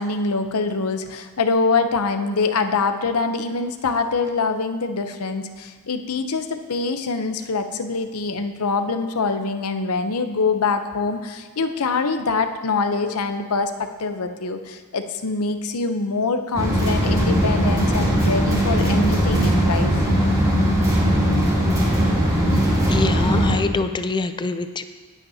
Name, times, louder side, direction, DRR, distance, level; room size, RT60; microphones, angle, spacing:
voice 1, 0.0-20.1, left 4 dB, 80° left, 8 dB, 0.7 m, -24 dB
sound 1, 16.6-23.5, equal, 15° right, 2.8 m, -19 dB
voice 2, 22.9-24.8, left 3 dB, 20° left, 10 dB, 0.4 m, -24 dB
17.5 x 8.3 x 2.8 m, 1.5 s
head